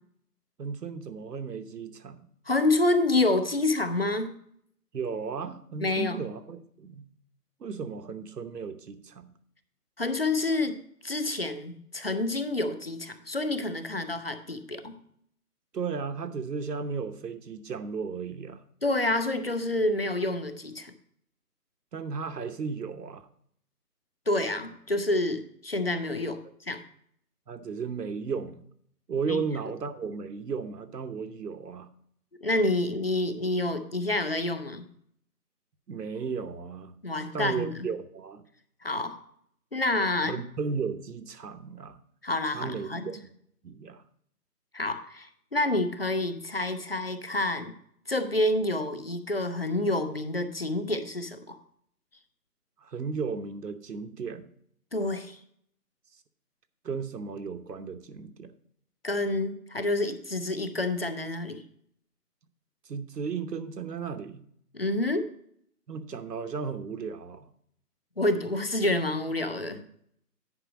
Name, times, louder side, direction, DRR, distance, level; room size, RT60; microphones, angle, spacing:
voice 1, 0.6-2.2 4.9-7.0 7.6-9.3 15.7-18.6 21.9-23.3 27.5-28.6 29.1-31.9 35.9-37.0 37.3-38.4 40.2-42.0 42.5-43.3 43.6-44.0 52.8-54.5 56.8-58.5 62.9-64.4 65.9-67.5, right 5 dB, 80° right, 10 dB, 1.0 m, -35 dB
voice 2, 2.5-4.3 5.8-6.2 10.0-14.9 18.8-20.9 24.3-26.8 29.3-29.4 32.4-34.9 37.0-37.9 38.8-39.2 39.7-40.4 42.2-43.1 44.7-47.7 48.1-51.6 54.9-55.4 59.0-61.6 64.7-65.3 68.2-69.8, left 2 dB, 40° left, 10 dB, 0.5 m, -28 dB
9.9 x 5.0 x 4.9 m, 0.68 s
figure-of-eight pair, 170°, 47 cm